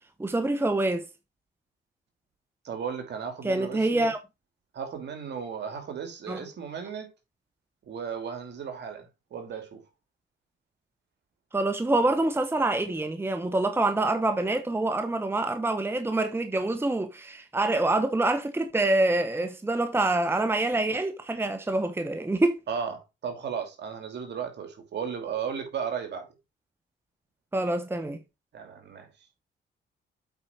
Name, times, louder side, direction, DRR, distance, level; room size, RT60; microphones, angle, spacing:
voice 1, 0.2-1.1 3.4-4.2 6.3-6.4 11.5-22.6 27.5-28.2, right 2 dB, 10° right, 1.0 m, -26 dB
voice 2, 2.6-4.1 4.7-7.1 7.8-9.8 22.7-26.3 28.5-29.1, right 7 dB, 60° right, 2.6 m, -35 dB
8.1 x 4.9 x 4.3 m
cardioid pair, 90°, 20 cm